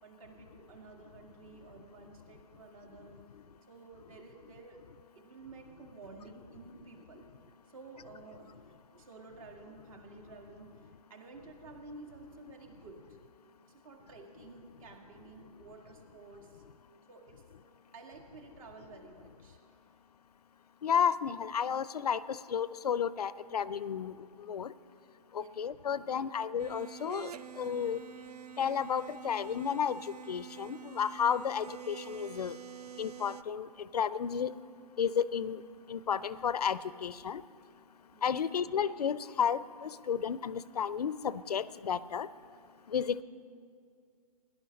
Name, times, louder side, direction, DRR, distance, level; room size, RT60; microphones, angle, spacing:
voice 1, 0.0-3.4 3.7-4.8 5.2-7.3 7.7-13.2 13.7-16.6 17.1-19.8 25.3-25.5 25.9-26.3 38.1-38.5, right 3 dB, 60° right, 3 dB, 2.0 m, -52 dB
voice 2, 20.8-24.1 24.4-24.7 25.3-27.3 27.6-28.0 28.6-32.6 33.0-33.7 33.9-34.5 35.0-35.6 35.9-37.4 38.2-42.3 42.9-43.2, left 7 dB, 85° left, 17 dB, 0.5 m, -32 dB
sound 1, 26.6-33.4, right 8 dB, 85° right, 0.5 m, -47 dB
17.0 x 11.0 x 5.3 m, 2.3 s
hypercardioid pair, 135°, 20 cm